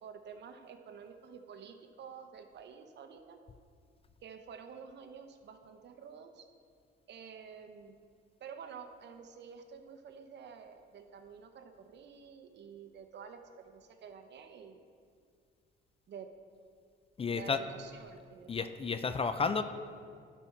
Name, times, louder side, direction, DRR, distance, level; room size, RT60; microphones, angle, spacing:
voice 1, 0.0-3.4 4.2-6.5 7.1-8.0 8.4-14.8 16.1-16.3 17.3-18.7, right 6 dB, 60° right, 6 dB, 0.8 m, -49 dB
voice 2, 17.2-17.6 18.5-19.6, left 5 dB, 30° left, 10 dB, 0.4 m, -31 dB
12.5 x 4.3 x 4.5 m, 2.2 s
cardioid pair, 90°, 20 cm